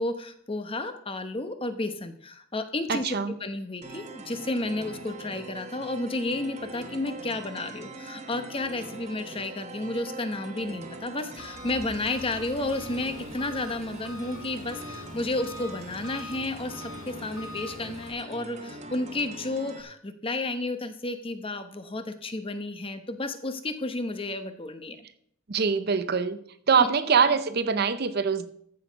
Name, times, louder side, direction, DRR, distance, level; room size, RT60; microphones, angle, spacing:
voice 1, 0.0-25.0, left 2 dB, 25° left, 9 dB, 0.9 m, -32 dB
voice 2, 2.9-3.4 25.5-26.4 26.7-28.5, right 6 dB, 50° right, 12 dB, 0.6 m, -23 dB
sound 1, 3.8-19.8, right 2 dB, 35° right, 1.2 m, -42 dB
Engine, 11.4-18.1, left 2 dB, 85° left, 1.7 m, -44 dB
14.0 x 6.4 x 5.2 m, 0.67 s
head